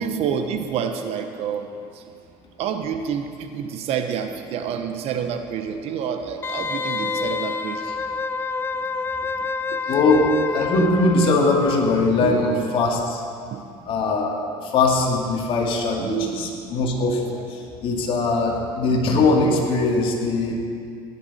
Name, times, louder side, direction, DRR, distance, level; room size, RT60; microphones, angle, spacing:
voice 1, 0.0-2.1 2.6-7.9 9.7-10.0 12.2-12.5 13.5-13.7 16.0-16.3 17.3-17.5, right 7 dB, 55° right, 7 dB, 1.0 m, -28 dB
Wind instrument woodwind instrument, 6.4-12.0 12.3-12.4, left 4 dB, 20° left, 0.4 m, -28 dB
voice 2, 9.9-13.2 13.9-20.5, left 3 dB, 45° left, 0 dB, 2.4 m, -21 dB
18.0 x 10.5 x 4.3 m, 2.4 s
supercardioid pair, 115°, 12 cm